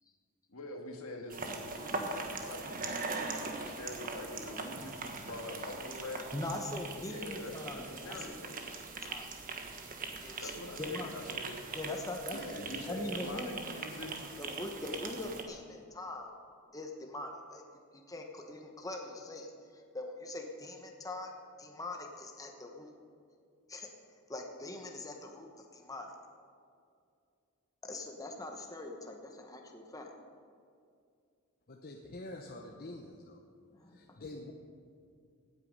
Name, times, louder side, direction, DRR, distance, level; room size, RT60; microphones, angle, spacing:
voice 1, 0.5-6.3 7.0-8.5 10.4-11.6 12.3-14.2, left 1 dB, 75° left, 2 dB, 1.9 m, -45 dB
sound 1, 1.3-15.4, right 3 dB, 40° right, 1.3 m, -41 dB
voice 2, 6.3-8.4 9.1-9.3 10.2-10.5 10.8-11.2 11.7-12.6 12.9-13.5 14.4-16.3 16.7-17.6 17.9-19.5 19.9-22.9 23.7-23.9 24.3-26.1 27.8-30.1 33.8-34.2, left 2 dB, 15° left, 2 dB, 1.0 m, -42 dB
voice 3, 31.7-33.4 33.9-34.5, left 2 dB, 45° left, 2 dB, 0.8 m, -46 dB
16.5 x 9.3 x 5.4 m, 2.4 s
head